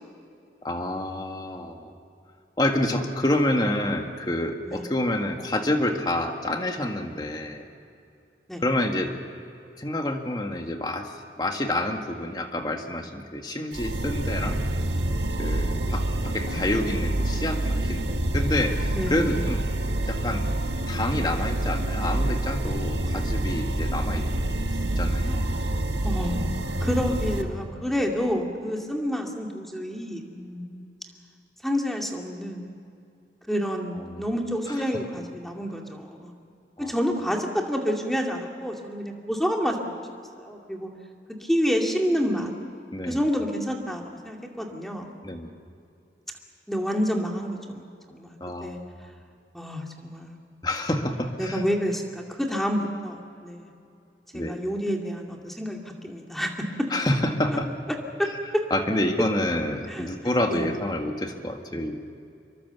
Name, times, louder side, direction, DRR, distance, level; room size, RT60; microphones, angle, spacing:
voice 1, 0.6-1.9 2.6-7.6 8.6-9.1 9.8-14.6 15.4-19.6 20.1-20.4 20.9-24.2 25.0-25.4 34.0-34.2 34.7-34.8 36.8-37.0 42.9-43.2 45.2-45.5 48.4-48.9 50.6-51.6 54.3-54.6 56.9-57.7 58.7-62.0, left 1 dB, 25° left, 4 dB, 1.9 m, -28 dB
sound 1, 13.7-27.4, right 1 dB, 85° right, 1.7 m, -27 dB
voice 2, 24.9-25.2 26.0-30.7 31.6-32.7 33.5-36.3 36.8-39.9 40.4-40.9 41.4-42.5 43.1-45.1 46.7-48.8 49.5-50.4 51.4-53.6 54.3-56.9 57.5-57.6 58.2-58.3 59.9-60.1 60.5-60.6, equal, ahead, 1 dB, 2.3 m, -29 dB
25.5 x 23.0 x 7.0 m, 2.5 s
head